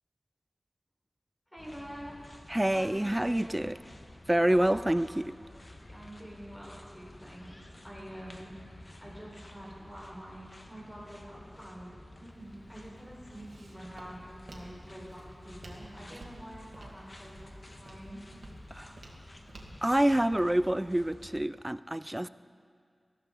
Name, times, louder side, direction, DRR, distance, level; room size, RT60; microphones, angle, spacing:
voice 1, 1.5-2.2 2.7-3.6 4.5-4.9 5.9-18.2 22.3-22.4, equal, 10° left, -4 dB, 4.8 m, -46 dB
sound 1, 1.6-21.4, left 1 dB, 45° left, 1.4 m, -51 dB
voice 2, 2.5-3.7 4.3-5.3 18.7-19.0 19.8-22.3, right 1 dB, 20° right, 16 dB, 0.3 m, -27 dB
Walk footsteps, 12.3-20.3, right 2 dB, 85° right, 1.8 m, -53 dB
18.5 x 14.0 x 4.0 m, 2.2 s
wide cardioid pair, 50°, 0 cm